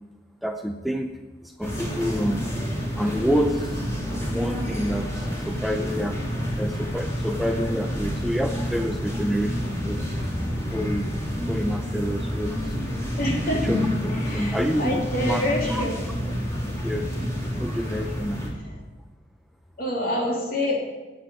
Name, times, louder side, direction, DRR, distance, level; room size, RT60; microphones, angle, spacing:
voice 1, 0.4-1.1 1.4-2.5 3.0-3.8 4.3-6.2 6.6-10.0 10.7-11.1 11.5-12.7 13.5-13.9 14.3-15.4 15.7-15.8 16.8-17.1 17.6-18.5, equal, ahead, 4 dB, 0.5 m, -28 dB
sound 1, 1.6-18.5, equal, 15° left, 2.6 m, -28 dB
voice 2, 13.2-13.6 14.1-16.1 18.0-18.1 18.6-18.8 19.8-20.8, left 1 dB, 55° left, -2 dB, 3.0 m, -27 dB
9.4 x 8.4 x 9.1 m, 1.2 s
head